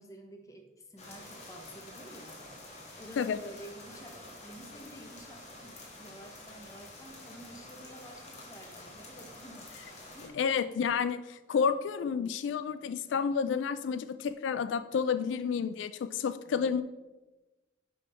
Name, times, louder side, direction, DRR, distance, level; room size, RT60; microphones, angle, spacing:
voice 1, 0.0-9.7 10.1-10.4 16.4-16.8, right 1 dB, 20° left, 3 dB, 0.9 m, -50 dB
sound 1, 1.0-10.3, left 1 dB, 40° left, 1.4 m, -49 dB
voice 2, 10.3-16.8, left 6 dB, 90° left, 13 dB, 0.3 m, -30 dB
10.0 x 3.6 x 4.3 m, 1.1 s
head